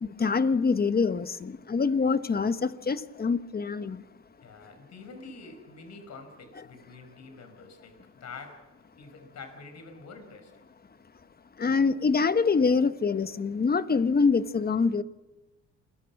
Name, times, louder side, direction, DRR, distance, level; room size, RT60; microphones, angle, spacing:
voice 1, 0.0-4.0 11.6-15.0, left 4 dB, 30° left, 1.2 m, -25 dB
voice 2, 4.4-10.6, left 4 dB, 60° left, 5.6 m, -47 dB
28.0 x 21.5 x 6.1 m
cardioid pair, 90°, 30 cm